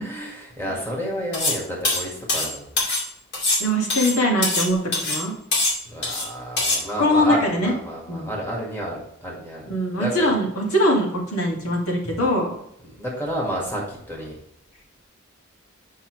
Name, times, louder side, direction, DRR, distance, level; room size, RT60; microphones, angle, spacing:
voice 1, 0.0-2.7 5.9-9.7 10.0-10.3 12.8-14.4, equal, 10° left, -3 dB, 1.8 m, -30 dB
sound 1, 1.3-1.6 1.8-3.1 3.3-4.7 4.9-5.2 5.5-6.3 6.6-6.8, left 2 dB, 50° left, 2.2 m, -23 dB
voice 2, 3.6-5.3 7.0-7.7 8.1-8.3 9.7-12.6, equal, 75° left, -2 dB, 2.1 m, -22 dB
8.4 x 5.6 x 3.2 m, 0.77 s
head